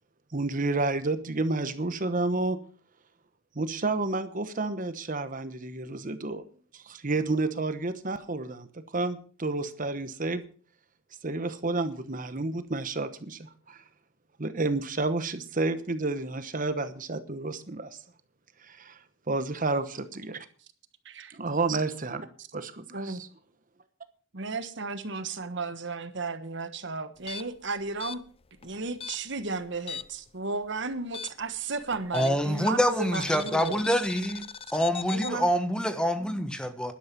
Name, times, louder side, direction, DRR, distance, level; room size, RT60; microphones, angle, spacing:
voice 1, 0.3-2.6 3.5-6.4 6.7-10.4 11.2-13.8 14.4-18.0 18.6-19.0 19.3-20.4 21.3-22.3 22.5-23.3, right 3 dB, 40° right, 1.1 m, -30 dB
voice 2, 24.3-28.2 28.6-33.8 35.1-35.5, right 3 dB, 60° right, 1.3 m, -34 dB
sound 1, 27.2-30.3 30.5-32.6 33.1-35.4, left 6 dB, 30° left, 0.5 m, -40 dB
voice 3, 32.1-34.4 34.7-36.9, equal, 5° left, 1.1 m, -26 dB
11.5 x 11.0 x 5.9 m
head